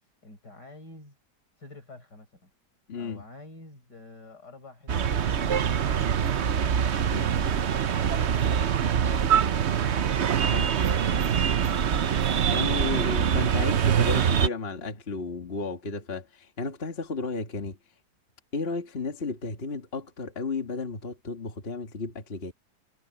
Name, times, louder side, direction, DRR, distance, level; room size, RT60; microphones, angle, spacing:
voice 1, 0.2-1.2 1.6-2.5 3.0-7.6 8.0-9.4 10.2-11.8, left 2 dB, 80° left, 6.8 m, -48 dB
voice 2, 2.9-3.2 7.1-7.3 10.5-10.7 12.5-17.8 18.5-22.5, left 4 dB, 35° left, 2.1 m, -33 dB
sound 1, 4.9-14.5, right 8 dB, 50° right, 0.9 m, -24 dB
omnidirectional pair, 1.8 m